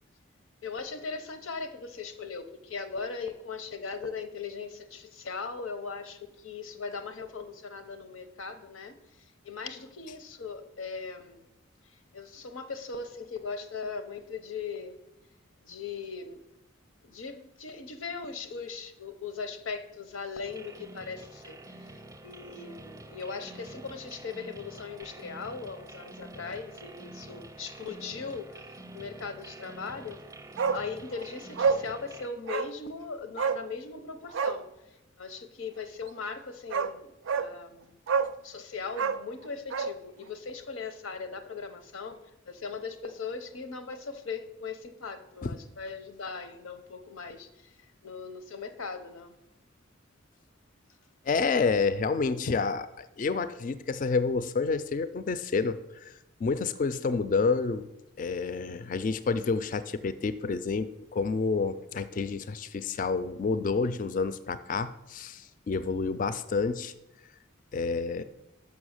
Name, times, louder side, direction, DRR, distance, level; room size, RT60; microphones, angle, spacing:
voice 1, 0.6-9.0 9.4-11.4 12.1-15.0 15.6-16.4 17.0-21.9 22.2-30.2 30.7-34.7 35.2-37.9 38.4-42.2 42.5-47.7 48.0-49.3, left 5 dB, 85° left, 9 dB, 0.7 m, -39 dB
sound 1, 20.4-32.3, right 2 dB, 15° right, 0.5 m, -47 dB
Bark, 30.6-30.8 31.1-31.2 31.6-31.8 32.5-32.7 33.4-33.6 34.3-34.6 36.2-36.3 36.7-36.9 37.3-37.5 38.1-38.4 38.9-39.9 40.2-40.3, right 5 dB, 70° right, 0.4 m, -28 dB
voice 2, 51.3-56.1 56.4-57.9 58.2-66.9 67.7-68.2, left 4 dB, 40° left, 13 dB, 0.3 m, -29 dB
6.1 x 5.6 x 6.4 m, 0.91 s
head